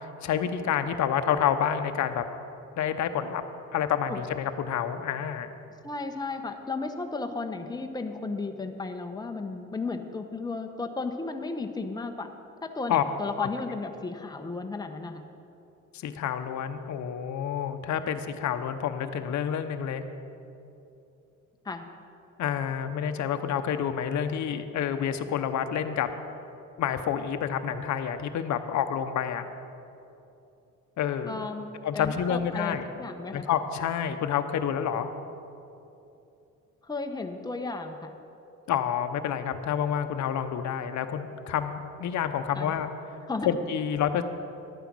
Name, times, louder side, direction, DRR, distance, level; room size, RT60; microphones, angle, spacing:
voice 1, 0.0-2.2 2.8-3.4 3.7-5.5 12.9-13.0 13.4-13.5 15.9-20.0 22.4-26.1 26.8-29.5 31.0-31.4 31.8-32.8 33.3-35.1 38.7-42.9 43.4-44.2, left 8 dB, 70° left, 8 dB, 0.8 m, -28 dB
voice 2, 5.8-12.3 12.6-15.2 21.6-21.9 31.2-31.7 31.9-33.4 36.8-38.2 42.5-42.7 43.3-43.5, left 3 dB, 15° left, 5 dB, 0.9 m, -34 dB
11.5 x 9.0 x 6.1 m, 2.8 s
cardioid pair, 90°, 30 cm